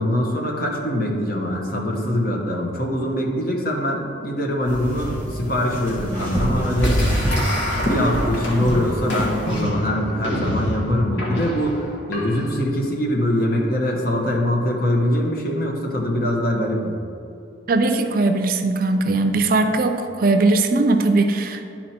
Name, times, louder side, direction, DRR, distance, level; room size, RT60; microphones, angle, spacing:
voice 1, 0.0-7.0 7.8-17.0, left 1 dB, 50° left, -1 dB, 1.2 m, -23 dB
sound 1, 4.6-9.6, right 1 dB, 10° left, 1.7 m, -26 dB
sound 2, 6.8-12.6, equal, 75° left, 1.6 m, -26 dB
voice 2, 17.7-21.6, right 2 dB, 50° right, 7 dB, 0.5 m, -19 dB
11.5 x 4.4 x 4.4 m, 2.6 s
head